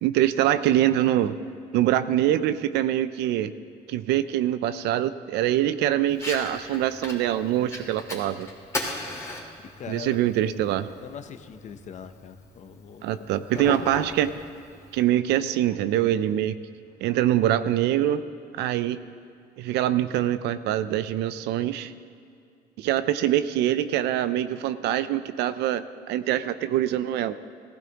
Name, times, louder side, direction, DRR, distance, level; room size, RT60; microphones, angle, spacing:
voice 1, 0.0-1.4 1.7-3.5 3.9-8.5 9.9-10.9 13.0-14.3 14.9-16.6 17.0-18.2 18.5-19.0 19.6-21.9 22.8-27.3, right 12 dB, 85° right, 13 dB, 0.6 m, -24 dB
Fire, 6.1-15.1, left 1 dB, 15° left, 2.7 m, -38 dB
voice 2, 9.6-10.3 11.0-13.3 13.5-13.8, left 8 dB, 45° left, 9 dB, 0.8 m, -41 dB
18.5 x 15.5 x 3.0 m, 2.5 s
cardioid pair, 110°, 17 cm